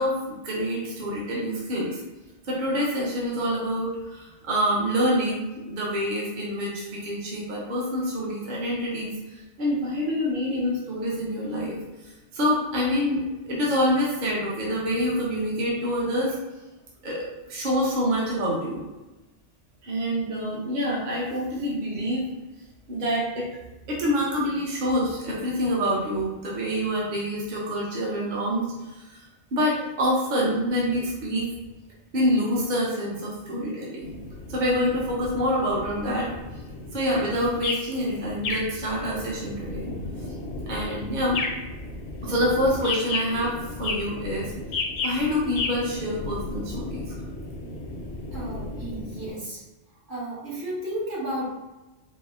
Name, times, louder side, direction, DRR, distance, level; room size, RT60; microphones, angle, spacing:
voice 1, 0.0-2.0 2.4-9.1 9.6-11.8 12.3-16.4 17.0-18.8 19.8-22.2 22.9-23.5 23.9-29.2 29.5-31.5 32.1-34.1 34.5-36.3 36.9-39.9 40.7-41.4 42.2-44.5 45.0-47.2, equal, 50° right, -4 dB, 0.8 m, -26 dB
sound 1, 34.0-49.3, left 3 dB, 75° left, 0.9 m, -34 dB
voice 2, 48.3-49.6 50.1-51.5, right 1 dB, 70° right, -6 dB, 1.5 m, -33 dB
4.1 x 2.0 x 3.5 m, 1.1 s
omnidirectional pair, 1.2 m